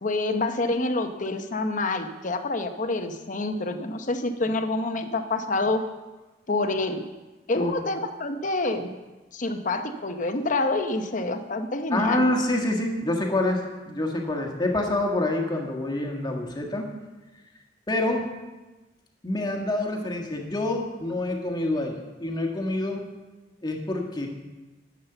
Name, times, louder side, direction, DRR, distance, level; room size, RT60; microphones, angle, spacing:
voice 1, 0.0-5.8 6.5-7.0 7.5-8.9 9.3-12.3, left 2 dB, 45° left, 7 dB, 0.9 m, -27 dB
voice 2, 11.9-16.9 17.9-18.2 19.2-23.1 23.6-24.3, left 1 dB, 25° left, 1 dB, 1.6 m, -27 dB
11.5 x 7.4 x 6.8 m, 1.2 s
head